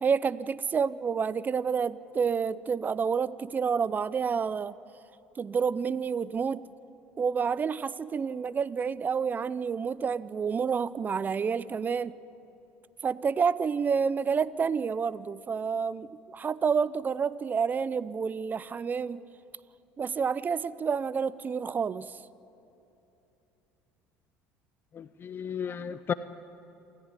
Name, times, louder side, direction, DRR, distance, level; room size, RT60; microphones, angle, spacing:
voice 1, 0.0-4.7 5.4-6.6 7.2-12.2 13.0-19.2 20.0-22.2, right 6 dB, 30° right, 18 dB, 0.7 m, -29 dB
voice 2, 24.9-26.1, left 7 dB, 40° left, 13 dB, 0.8 m, -34 dB
27.5 x 14.5 x 9.8 m, 2.9 s
supercardioid pair, 85°, 6 cm